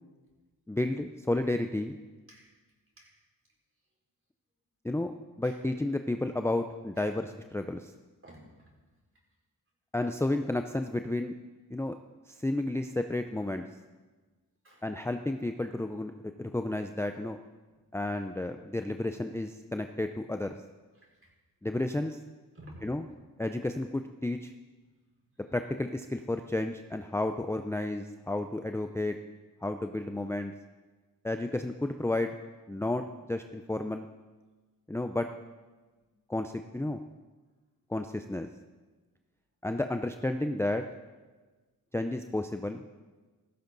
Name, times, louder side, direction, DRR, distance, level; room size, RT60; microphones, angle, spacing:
voice 1, 0.7-2.0 4.8-5.1 5.4-7.9 9.9-11.3 11.7-12.0 12.3-13.6 14.8-17.4 17.9-20.6 21.6-22.2 22.8-23.0 23.4-24.5 25.5-29.2 29.6-30.5 31.2-32.3 32.7-34.1 34.9-35.3 36.3-37.0 37.9-38.5 39.6-40.9 41.9-42.8, left 2 dB, 5° left, 6 dB, 0.5 m, -32 dB
voice 2, 8.2-8.7 14.6-14.9 17.7-17.8 20.9-21.3 22.5-22.9 25.1-25.3 35.7-36.1 41.2-41.4, equal, 35° right, -3 dB, 5.2 m, -53 dB
16.5 x 14.5 x 4.0 m, 1.3 s
wide cardioid pair, 80°, 36 cm